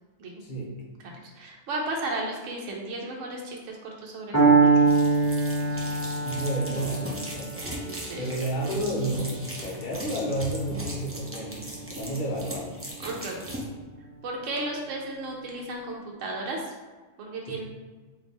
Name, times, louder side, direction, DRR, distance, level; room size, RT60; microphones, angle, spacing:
voice 1, 0.4-0.8 6.2-7.7 8.2-12.8 17.5-17.6, right 1 dB, 45° left, -2 dB, 0.9 m, -31 dB
voice 2, 1.3-4.9 7.9-8.3 13.0-13.6 14.2-16.7 17.2-17.6, right 2 dB, 80° right, -1 dB, 1.1 m, -34 dB
Piano, 4.3-12.3, right 4 dB, 15° left, 1.0 m, -25 dB
sound 1, 4.9-13.7, equal, 20° right, 0.4 m, -39 dB
3.5 x 2.8 x 4.0 m, 1.3 s
omnidirectional pair, 1.3 m